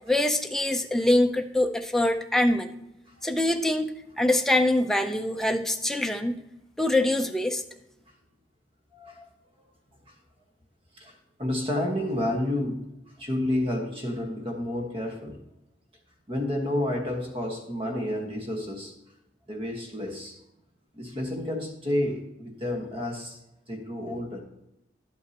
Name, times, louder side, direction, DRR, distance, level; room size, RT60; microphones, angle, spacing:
voice 1, 0.1-2.7 3.2-6.4 6.8-7.6, left 1 dB, 5° left, 5 dB, 0.5 m, -24 dB
voice 2, 8.9-9.3 10.1-10.2 11.0-12.8 13.2-15.4 16.3-18.9 19.5-20.4 20.9-23.4 23.7-24.4, left 1 dB, 30° right, 2 dB, 1.4 m, -30 dB
11.0 x 8.2 x 2.9 m, 0.87 s
head